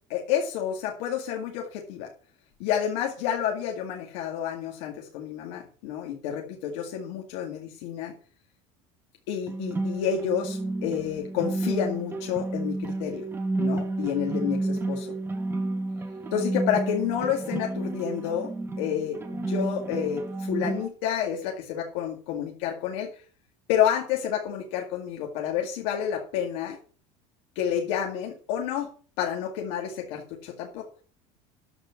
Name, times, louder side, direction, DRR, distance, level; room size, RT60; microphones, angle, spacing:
voice 1, 0.1-2.1 2.6-8.1 9.3-13.2 13.6-15.1 16.3-18.5 18.8-19.2 19.5-23.2 23.7-26.8 27.6-28.9 29.2-30.9, left 9 dB, 80° left, 1 dB, 2.2 m, -29 dB
sound 1, 9.5-20.9, right 2 dB, 15° right, 1.8 m, -31 dB
13.0 x 4.5 x 7.2 m, 0.40 s
cardioid pair, 140°, 15 cm